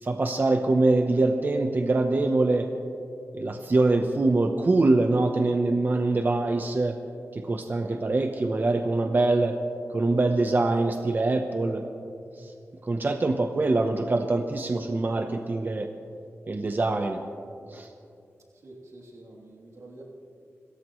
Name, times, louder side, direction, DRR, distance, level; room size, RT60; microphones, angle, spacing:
voice 1, 0.0-2.7 3.3-7.0 7.3-9.6 9.9-11.8 12.4-12.5 12.8-15.9 16.5-17.2 17.7-17.9, right 2 dB, 40° right, 5 dB, 0.8 m, -24 dB
voice 2, 18.6-20.0, right 2 dB, 80° right, -3 dB, 3.0 m, -47 dB
27.0 x 14.5 x 3.1 m, 2.6 s
wide cardioid pair, 85°, 5 cm